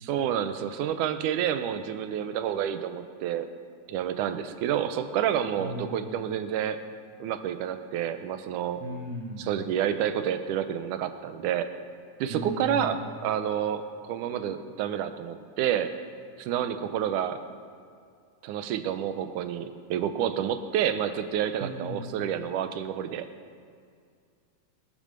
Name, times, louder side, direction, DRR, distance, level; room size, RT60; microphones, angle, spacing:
voice 1, 0.0-3.5 3.9-6.8 7.2-8.8 9.4-11.7 12.2-15.9 16.4-17.4 18.4-23.3, right 9 dB, 85° right, 10 dB, 2.3 m, -29 dB
voice 2, 5.6-6.2 8.8-9.5 12.3-13.0 21.6-22.1, equal, 65° right, -1 dB, 2.7 m, -36 dB
21.0 x 8.7 x 6.7 m, 2.2 s
omnidirectional pair, 3.5 m